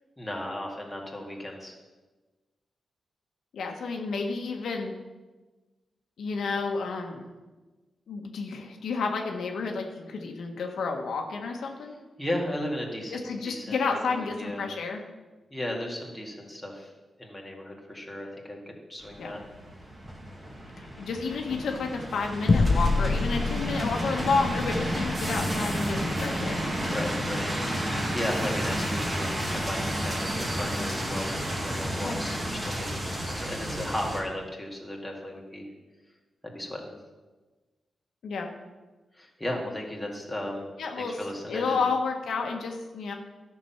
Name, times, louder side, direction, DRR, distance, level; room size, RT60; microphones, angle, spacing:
voice 1, 0.2-1.7 12.2-14.7 15.5-16.9 17.2-19.4 26.8-27.5 27.8-35.7 36.4-36.9 39.1-40.7 41.0-41.8, left 1 dB, 5° left, -1 dB, 2.0 m, -35 dB
voice 2, 3.5-4.9 6.2-7.2 8.1-11.9 13.1-15.0 19.2-19.4 20.8-26.6 32.0-32.2 38.2-38.5 40.8-41.2 41.5-43.1, left 4 dB, 80° left, 2 dB, 1.2 m, -31 dB
sound 1, 19.0-34.2, equal, 20° right, 2.0 m, -31 dB
sound 2, 22.5-27.3, left 3 dB, 35° left, 0.5 m, -28 dB
12.5 x 6.0 x 5.7 m, 1.2 s
wide cardioid pair, 115°, 0 cm